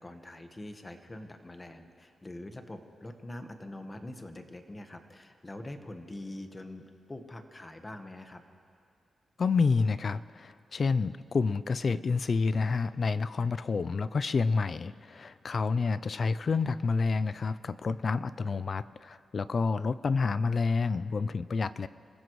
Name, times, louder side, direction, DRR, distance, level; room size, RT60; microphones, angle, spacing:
voice 1, 0.0-8.4, left 1 dB, 25° left, 6 dB, 1.3 m, -44 dB
voice 2, 9.4-21.9, left 4 dB, 55° left, 16 dB, 0.4 m, -29 dB
27.5 x 15.5 x 3.2 m, 2.4 s
cardioid pair, 70°, 0 cm